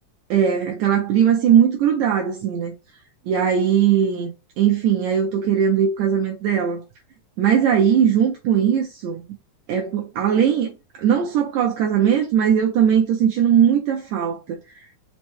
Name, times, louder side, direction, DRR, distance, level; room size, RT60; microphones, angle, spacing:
voice 1, 0.3-2.7 3.3-4.3 4.6-6.8 7.4-9.2 9.7-10.7 11.0-14.6, right 8 dB, 80° right, 1.9 m, -19 dB
5.2 x 2.1 x 3.1 m
omnidirectional pair, 3.5 m